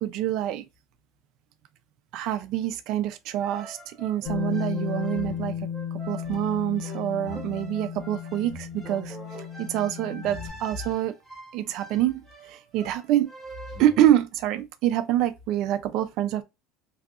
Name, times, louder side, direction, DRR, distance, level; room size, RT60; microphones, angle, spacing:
voice 1, 0.0-0.6 2.1-5.5 6.1-9.2 9.6-11.1 11.5-12.2 12.5-13.3 13.8-16.4, right 12 dB, 50° right, 0.3 m, -26 dB
sound 1, 3.4-14.1, right 2 dB, 5° left, 0.7 m, -44 dB
Bass guitar, 4.2-10.5, left 8 dB, 85° left, 1.3 m, -34 dB
2.7 x 2.4 x 2.3 m
cardioid pair, 170°, 0 cm